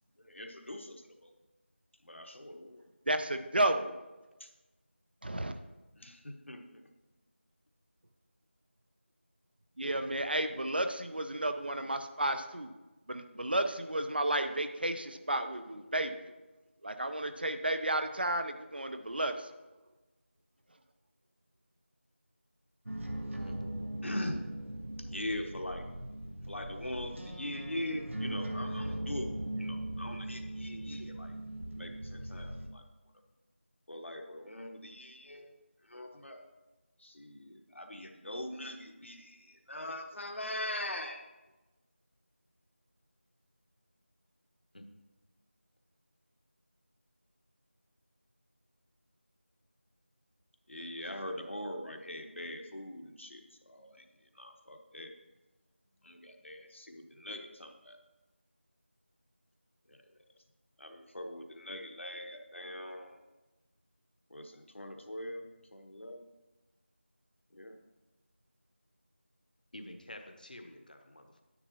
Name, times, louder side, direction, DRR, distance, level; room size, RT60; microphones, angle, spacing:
voice 1, 0.2-1.3 2.1-2.8 4.4-4.5 6.0-6.8 24.0-24.4 25.0-25.8 26.5-31.3 31.8-32.8 33.9-35.5 35.9-36.4 37.0-41.3 50.7-54.0 54.3-55.1 56.0-58.0 59.9-60.0 60.8-63.2 64.3-66.3 67.5-67.8, left 1 dB, 70° left, 4 dB, 1.2 m, -42 dB
voice 2, 3.1-4.0 5.2-5.5 9.8-12.7 13.1-16.3 16.8-19.5, right 1 dB, 50° right, 9 dB, 0.6 m, -32 dB
sound 1, 22.9-32.7, right 1 dB, 75° right, 1.1 m, -39 dB
voice 3, 69.7-71.4, left 1 dB, 45° left, 6 dB, 0.9 m, -49 dB
9.8 x 8.1 x 2.9 m, 1.1 s
figure-of-eight pair, 175°, 7 cm